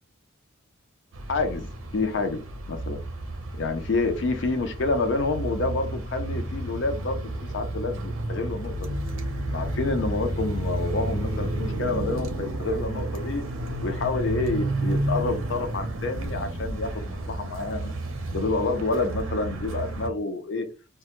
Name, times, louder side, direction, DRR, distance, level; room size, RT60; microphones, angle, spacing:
sound 1, 1.1-20.1, right 1 dB, 80° right, 0.5 m, -31 dB
voice 1, 1.3-2.4 2.7-3.0 3.6-8.9 9.5-13.4 13.8-17.9 18.3-20.7, left 3 dB, 60° left, 7 dB, 0.4 m, -28 dB
2.2 x 2.0 x 2.9 m, 0.31 s
head